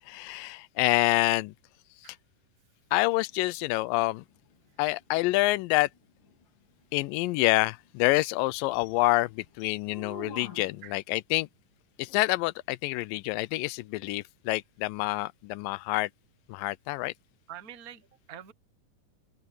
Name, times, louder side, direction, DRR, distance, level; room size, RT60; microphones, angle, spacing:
voice 1, 0.1-1.5 2.0-2.2 2.9-4.2 4.8-5.9 6.9-11.5 12.0-16.1 16.5-17.1, left 20 dB, 85° left, 2.3 m, -27 dB
sound 1, 3.1-11.0 14.1-14.2, left 2 dB, 70° left, 5.6 m, -51 dB
voice 2, 17.5-18.5, right 10 dB, 75° right, 0.8 m, -45 dB
open air
omnidirectional pair, 3.9 m